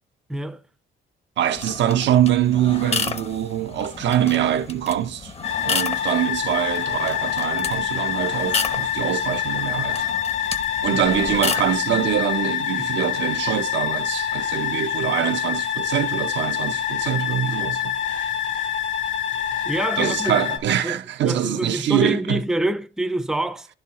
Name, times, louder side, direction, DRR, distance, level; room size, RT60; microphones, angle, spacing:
voice 1, 0.3-0.6 12.8-12.9 19.6-20.4 20.8-21.0 21.2-23.7, right 1 dB, 5° right, 0.5 m, -26 dB
voice 2, 1.4-5.3 5.6-10.1 10.8-18.0 20.0-22.4, right 10 dB, 65° right, 0.6 m, -24 dB
sound 1, 1.5-12.2, left 4 dB, 30° left, 0.8 m, -32 dB
sound 2, 5.4-20.6, left 9 dB, 60° left, 1.7 m, -26 dB
10.5 x 4.4 x 3.5 m
cardioid pair, 90°, 20 cm